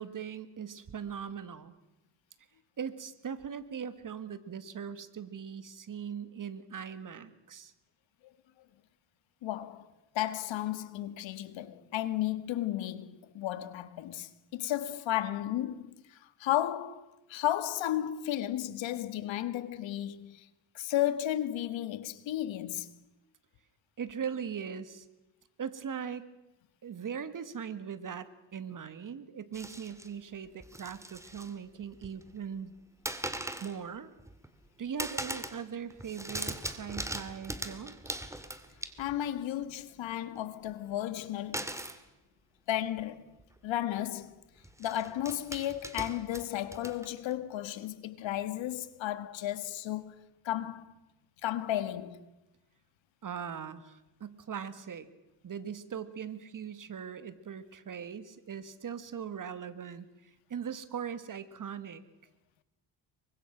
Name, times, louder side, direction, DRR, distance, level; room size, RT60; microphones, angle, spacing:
voice 1, 0.0-1.7 2.8-7.7 24.0-25.1 25.6-26.3 26.8-32.7 33.6-34.1 34.8-38.2 53.2-55.1 55.4-62.0, right 7 dB, 45° right, 2.0 m, -40 dB
voice 2, 9.4-9.9 10.1-20.5 20.7-22.9 39.0-41.7 42.7-43.4 43.6-44.4 44.8-50.1 50.4-50.9 51.4-52.2, left 12 dB, 80° left, 1.7 m, -34 dB
sound 1, 29.5-30.1 30.6-31.5 31.8-32.4 33.0-33.8 34.2-34.7 35.0-35.6 35.9-39.3 41.5-42.0 43.0-43.1 43.4-43.6 44.6-47.3, right 1 dB, 5° right, 2.2 m, -40 dB
28.0 x 24.0 x 6.0 m
cardioid pair, 100°, 44 cm